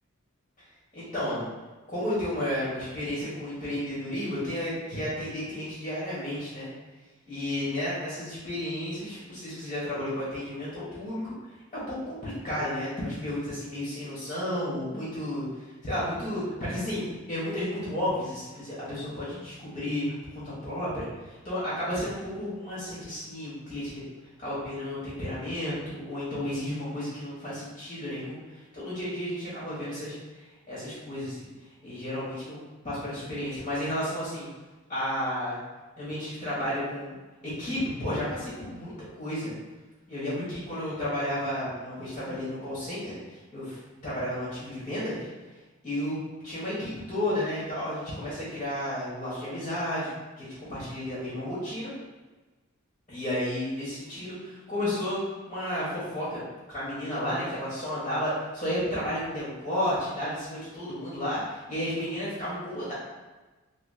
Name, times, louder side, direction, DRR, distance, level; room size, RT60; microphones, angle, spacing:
voice 1, 0.9-1.5 1.9-6.7 7.3-11.3 11.7-15.4 15.8-20.0 20.3-24.0 24.4-31.5 31.8-32.6 32.8-34.5 34.9-35.6 36.0-37.2 37.4-39.5 40.1-43.2 43.5-45.3 45.8-46.2 46.4-50.1 50.4-51.9 53.1-56.4 56.7-62.9, left 1 dB, 30° left, -9 dB, 1.2 m, -32 dB
3.9 x 2.1 x 3.2 m, 1.2 s
head